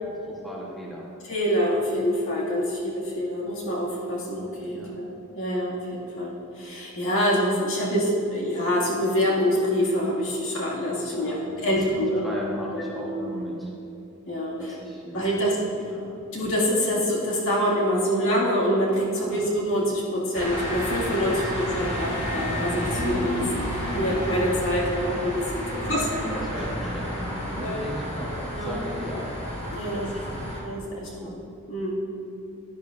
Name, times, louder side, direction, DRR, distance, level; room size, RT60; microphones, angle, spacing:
voice 1, 0.3-1.0 4.7-4.9 11.1-13.7 14.6-15.2 15.8-16.3 19.0-19.5 21.3-22.2 22.9-23.3 25.7-29.3 29.9-31.4, equal, ahead, -5 dB, 1.1 m, -37 dB
voice 2, 1.3-5.1 5.4-12.2 12.7-13.3 14.3-14.7 15.1-15.6 16.3-23.4 23.7-25.6 25.9-26.1 27.5-27.8 28.5-28.7 29.7-30.1 30.6-31.1 31.7-32.0, equal, 60° left, -5 dB, 2.1 m, -26 dB
sound 1, 20.3-30.6, equal, 30° left, 1.8 m, -31 dB
11.0 x 10.5 x 2.5 m, 2.8 s
head